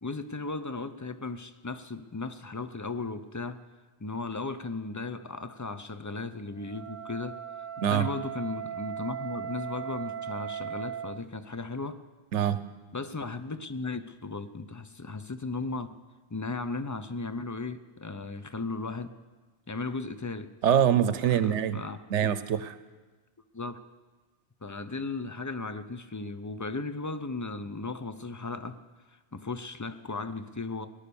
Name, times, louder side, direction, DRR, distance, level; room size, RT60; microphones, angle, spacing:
voice 1, 0.0-3.6 4.0-7.4 7.9-12.0 12.9-15.9 16.3-19.1 19.7-20.5 21.3-22.0 23.5-23.8 24.6-28.8 29.1-30.9, left 3 dB, 25° left, 11 dB, 0.4 m, -36 dB
Wind instrument woodwind instrument, 6.6-11.2, right 9 dB, 50° right, 0.7 m, -38 dB
voice 2, 20.6-21.8 22.1-22.7, right 9 dB, 80° right, 13 dB, 1.0 m, -24 dB
18.5 x 10.5 x 7.0 m, 1.3 s
omnidirectional pair, 1.2 m